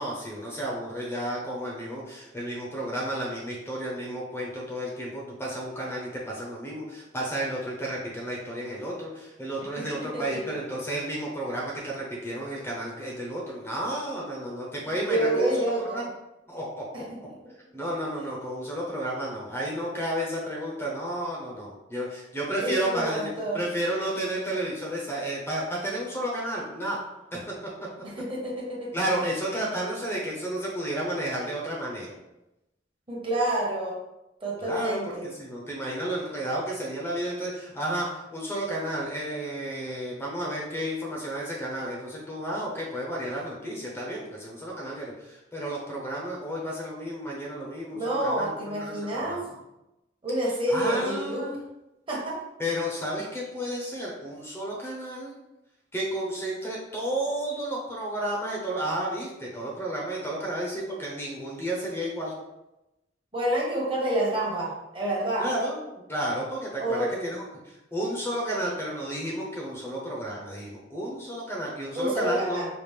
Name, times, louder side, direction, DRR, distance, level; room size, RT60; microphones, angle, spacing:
voice 1, 0.0-15.5 15.9-16.1 16.5-16.8 17.7-27.0 27.3-27.4 28.9-32.1 34.6-49.6 50.7-51.6 52.6-55.3 55.9-62.3 65.4-72.6, right 1 dB, 15° left, -3 dB, 0.7 m, -32 dB
voice 2, 9.8-10.4 14.8-16.0 16.9-17.2 22.6-23.6 28.0-28.9 33.1-34.0 34.4-35.3 47.9-49.4 50.2-51.4 52.1-52.4 63.3-65.4 66.8-67.1 71.9-72.7, right 1 dB, 30° right, -4 dB, 1.1 m, -28 dB
5.0 x 2.4 x 3.2 m, 0.95 s
head